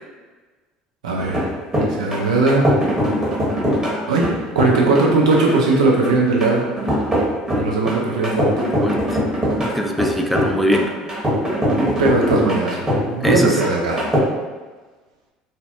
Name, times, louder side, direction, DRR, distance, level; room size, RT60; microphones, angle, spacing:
voice 1, 1.0-1.5 1.9-2.7 4.1-4.2 4.5-6.6 7.6-8.5 11.7-14.0, right 3 dB, 85° right, -2 dB, 0.5 m, -18 dB
sound 1, 1.2-14.2, equal, 20° right, 1.0 m, -22 dB
voice 2, 8.8-9.2 9.6-10.9 13.2-13.6, equal, ahead, 1 dB, 0.3 m, -21 dB
2.6 x 2.1 x 2.4 m, 1.3 s
hypercardioid pair, 65°, 3 cm